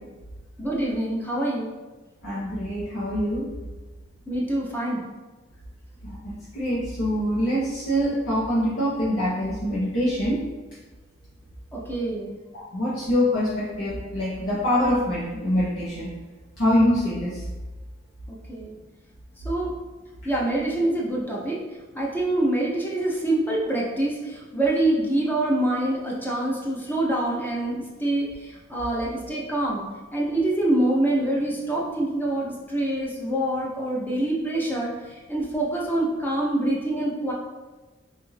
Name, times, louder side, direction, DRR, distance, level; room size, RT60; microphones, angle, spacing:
voice 1, 0.6-1.7 4.3-5.0 11.7-12.3 18.5-18.7 19.4-19.7 20.2-21.6 21.9-29.8 30.1-34.9 35.3-37.3, right 1 dB, 10° left, -3 dB, 0.6 m, -25 dB
voice 2, 2.2-3.4 6.0-10.3 12.5-16.1 16.6-17.4, equal, 85° left, -9 dB, 0.8 m, -24 dB
4.1 x 2.5 x 3.2 m, 1.3 s
head